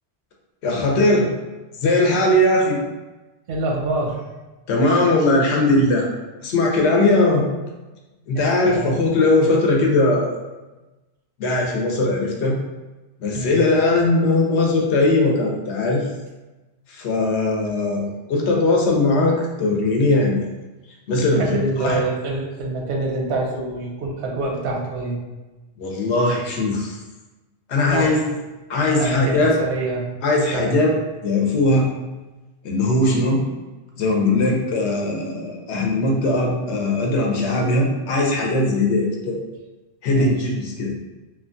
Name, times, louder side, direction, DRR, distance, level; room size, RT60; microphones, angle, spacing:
voice 1, 0.6-1.3 1.8-2.8 4.7-6.1 6.4-7.5 8.3-10.4 11.4-12.6 13.2-16.1 16.9-20.5 21.1-22.0 25.8-27.0 27.7-28.2 28.7-29.5 30.2-30.9 31.2-31.9 32.6-33.4 34.0-39.4 40.0-40.9, left 2 dB, 90° left, -1 dB, 0.9 m, -19 dB
voice 2, 3.5-4.2 8.3-8.9 13.3-13.6 21.3-25.2 27.8-28.2 29.0-30.1 30.4-30.8 31.7-31.8 34.4-34.6 40.1-40.4, right 2 dB, 85° right, -1 dB, 0.9 m, -26 dB
3.0 x 2.2 x 2.5 m, 1.1 s
omnidirectional pair, 1.1 m